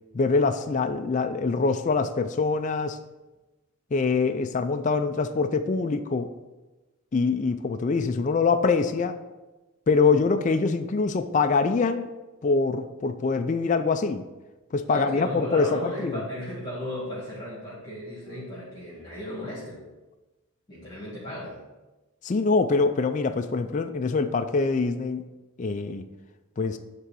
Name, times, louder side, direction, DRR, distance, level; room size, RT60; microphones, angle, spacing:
voice 1, 0.1-3.0 3.9-6.3 7.1-9.2 9.9-12.1 12.4-14.2 14.7-16.1 22.2-25.2 25.6-26.1 26.6-26.8, left 4 dB, 35° left, 7 dB, 0.3 m, -24 dB
voice 2, 14.9-19.8 20.7-21.6, equal, 20° left, -7 dB, 2.1 m, -35 dB
9.7 x 3.7 x 6.1 m, 1.1 s
head